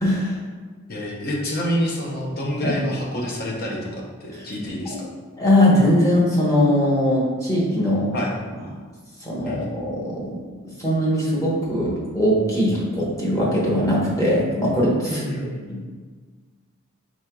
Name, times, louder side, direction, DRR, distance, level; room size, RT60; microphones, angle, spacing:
voice 1, 0.0-0.3 2.6-2.7 5.4-8.1 9.2-10.3 10.8-15.3 15.7-15.8, equal, 15° left, -6 dB, 1.0 m, -20 dB
voice 2, 0.9-5.1 8.1-8.3 9.4-9.6 15.1-15.9, equal, 45° left, -2 dB, 0.7 m, -28 dB
4.4 x 3.7 x 2.3 m, 1.5 s
head